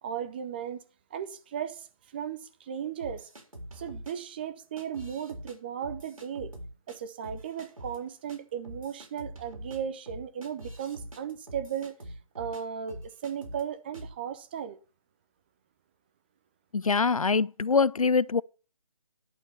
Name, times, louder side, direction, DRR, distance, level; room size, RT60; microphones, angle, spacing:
voice 1, 0.0-0.8 1.1-1.9 2.1-3.3 3.7-6.5 6.9-12.0 12.4-14.8, right 8 dB, 15° right, 0.6 m, -36 dB
sound 1, 3.0-4.1 4.8-5.6 5.8-7.0 7.2-8.0 8.3-8.4 8.6-12.6 12.9-13.6 13.9-14.2, right 1 dB, 75° right, 3.9 m, -44 dB
voice 2, 16.7-18.4, left 5 dB, 80° left, 0.5 m, -24 dB
11.0 x 6.7 x 6.9 m
figure-of-eight pair, 150°, 18 cm